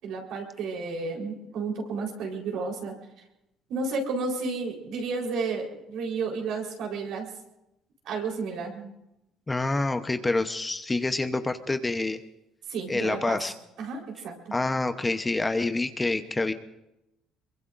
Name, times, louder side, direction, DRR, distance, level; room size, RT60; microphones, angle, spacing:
voice 1, 0.0-2.9 3.7-7.3 8.0-8.9 12.7-13.4 13.8-14.5, right 4 dB, 70° right, 0 dB, 4.1 m, -32 dB
voice 2, 9.5-12.2 12.9-13.5 14.5-16.5, left 2 dB, 15° left, 9 dB, 0.9 m, -27 dB
23.5 x 23.0 x 2.6 m, 0.90 s
supercardioid pair, 90°, 0 cm